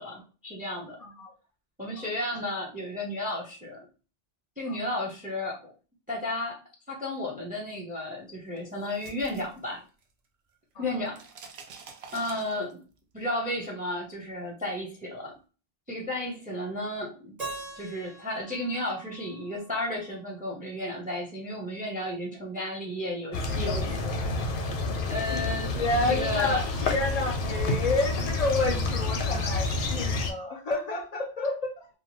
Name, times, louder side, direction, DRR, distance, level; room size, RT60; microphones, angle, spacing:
voice 1, 0.0-1.0 1.8-3.9 4.6-5.6 6.1-6.6 6.9-9.8 10.8-11.2 12.1-12.8 13.1-15.4 15.9-17.3 17.7-24.2 25.1-25.7 26.1-26.6, left 1 dB, 10° right, 0.5 m, -33 dB
voice 2, 1.0-1.3 2.0-2.4 4.7-4.8 10.7-11.1 24.9-25.0 25.3-25.5 25.7-31.9, left 2 dB, 50° left, 0.5 m, -30 dB
sound 1, 8.6-10.3 10.5-13.0, right 5 dB, 75° right, 0.9 m, -48 dB
Keyboard (musical), 17.4-20.4, right 3 dB, 40° right, 1.2 m, -43 dB
sound 2, 23.3-30.3, left 2 dB, 75° left, 0.8 m, -29 dB
2.6 x 2.1 x 2.9 m
omnidirectional pair, 1.1 m